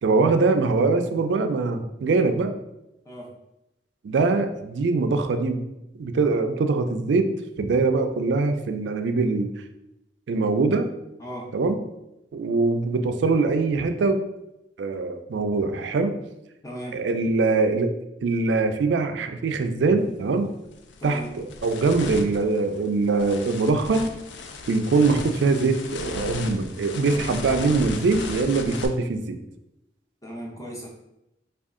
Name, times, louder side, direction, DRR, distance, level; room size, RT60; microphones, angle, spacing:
voice 1, 0.0-2.5 4.0-5.6 6.0-7.3 7.6-9.5 10.3-10.9 11.5-11.8 12.3-14.2 14.8-16.1 16.9-17.9 18.2-20.5 21.0-24.1 24.7-29.4, right 3 dB, 75° right, 7 dB, 0.4 m, -23 dB
voice 2, 11.2-11.5 16.6-17.0 21.0-21.3 30.2-30.9, equal, 20° left, -1 dB, 0.7 m, -36 dB
sound 1, 20.0-20.2 20.7-28.9, left 3 dB, 85° left, 0.4 m, -36 dB
3.5 x 2.3 x 3.6 m, 0.89 s
head